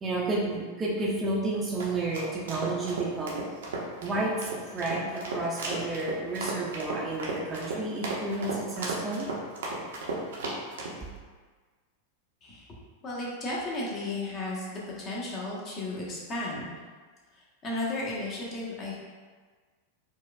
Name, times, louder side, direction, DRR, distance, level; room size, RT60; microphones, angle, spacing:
voice 1, 0.0-3.4 4.0-9.3, right 2 dB, 20° right, -4 dB, 0.5 m, -31 dB
sound 1, 1.5-11.0, right 2 dB, 60° right, 0.6 m, -35 dB
voice 2, 13.0-16.7 17.6-19.0, left 2 dB, 30° left, -4 dB, 0.9 m, -34 dB
4.6 x 2.3 x 2.2 m, 1.4 s
figure-of-eight pair, 90°, 0 cm